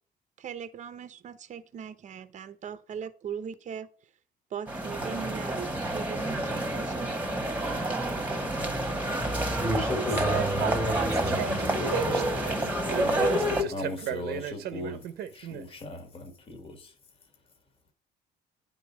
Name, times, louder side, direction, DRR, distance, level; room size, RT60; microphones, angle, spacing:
voice 1, 0.4-3.9 4.5-7.2 13.0-13.1, right 8 dB, 45° right, 0.8 m, -39 dB
sound 1, 4.7-13.6, right 1 dB, 10° right, 1.4 m, -29 dB
voice 2, 9.6-12.6, equal, 5° left, 1.9 m, -31 dB
sound 2, 10.1-15.6, right 10 dB, 75° right, 0.9 m, -34 dB
voice 3, 12.9-16.9, left 2 dB, 35° left, 1.8 m, -39 dB
9.5 x 3.9 x 6.2 m
cardioid pair, 110°, 17 cm